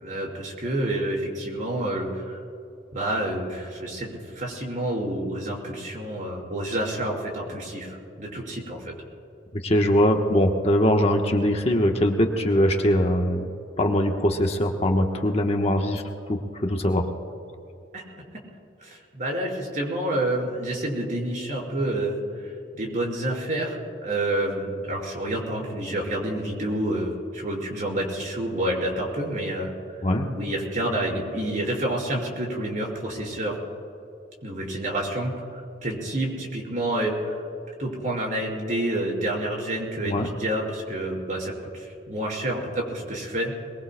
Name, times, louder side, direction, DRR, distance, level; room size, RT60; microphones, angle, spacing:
voice 1, 0.0-2.4 2.9-8.9 17.9-18.0 18.8-23.8 24.0-29.7 30.3-33.6 34.4-37.3 37.8-41.5 41.8-43.5, right 1 dB, 45° right, -2 dB, 4.5 m, -28 dB
voice 2, 9.6-13.4 13.8-16.0 16.3-17.1 30.0-30.3 40.0-40.3, equal, 35° left, 2 dB, 1.1 m, -22 dB
22.5 x 22.5 x 2.2 m, 2.7 s
head